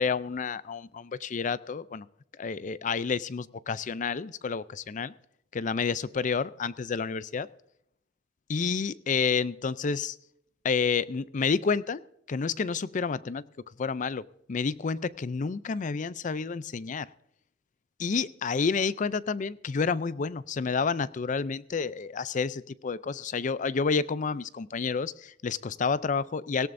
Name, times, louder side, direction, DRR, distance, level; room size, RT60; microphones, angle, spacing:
voice 1, 0.0-2.1 2.4-5.1 5.5-7.5 8.5-10.2 10.6-12.0 12.3-13.4 13.8-14.2 14.5-17.1 18.0-26.7, left 5 dB, 40° left, 17 dB, 0.4 m, -29 dB
18.0 x 17.0 x 2.6 m, 0.74 s
head